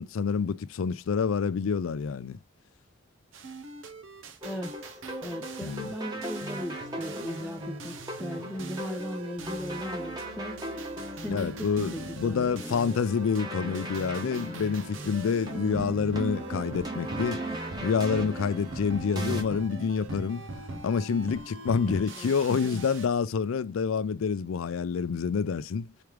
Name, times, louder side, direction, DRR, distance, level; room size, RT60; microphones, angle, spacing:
voice 1, 0.0-2.4 5.6-5.9 11.2-17.4 17.8-20.5 20.8-25.9, left 6 dB, 90° left, 0.4 m, -28 dB
sound 1, 3.3-23.1, right 2 dB, 75° right, 0.7 m, -41 dB
voice 2, 4.4-12.8 15.5-15.6 21.8-22.8, left 1 dB, ahead, 0.6 m, -38 dB
sound 2, 4.4-19.4, right 1 dB, 20° right, 1.1 m, -39 dB
4.9 x 3.1 x 3.3 m
head